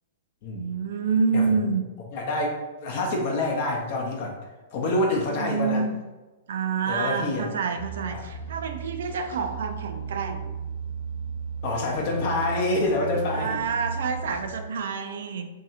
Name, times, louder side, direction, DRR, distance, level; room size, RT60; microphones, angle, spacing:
voice 1, 0.5-1.8 5.3-6.0 6.5-10.6 13.3-15.5, right 5 dB, 70° right, 6 dB, 0.3 m, -28 dB
voice 2, 1.3-1.7 2.1-4.4 4.7-5.8 6.9-7.5 8.1-8.3 11.6-13.6, left 2 dB, 50° left, 0 dB, 0.6 m, -27 dB
sound 1, 7.8-14.5, right 5 dB, 85° left, 0.7 m, -35 dB
2.6 x 2.2 x 2.7 m, 1.2 s
hypercardioid pair, 115°, 0 cm